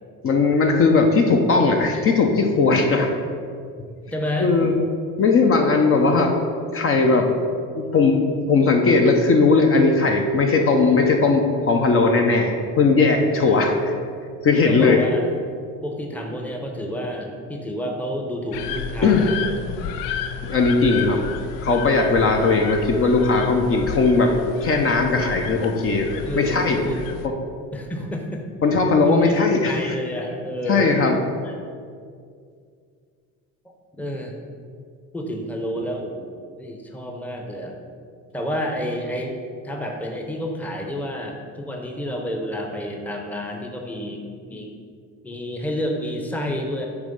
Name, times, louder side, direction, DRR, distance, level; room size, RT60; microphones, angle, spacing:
voice 1, 0.2-3.1 4.4-4.7 5.2-6.4 6.7-7.3 7.8-13.9 14.4-15.0 19.0-19.3 20.4-21.2 21.6-24.3 24.6-26.8 27.2-27.3 28.6-30.0 30.7-31.2, left 3 dB, 40° left, 3 dB, 0.7 m, -18 dB
voice 2, 4.1-4.5 13.5-13.6 14.5-15.3 15.8-19.6 26.3-27.2 27.7-28.4 29.0-31.0 31.4-31.6 34.0-34.4 35.1-37.8 38.3-39.3 39.6-44.2 44.5-44.7 45.2-46.9, equal, 5° left, 2 dB, 0.8 m, -29 dB
sound 1, 18.5-27.3, left 7 dB, 75° left, 0.5 m, -32 dB
8.1 x 3.1 x 5.2 m, 2.2 s
supercardioid pair, 100°, 34 cm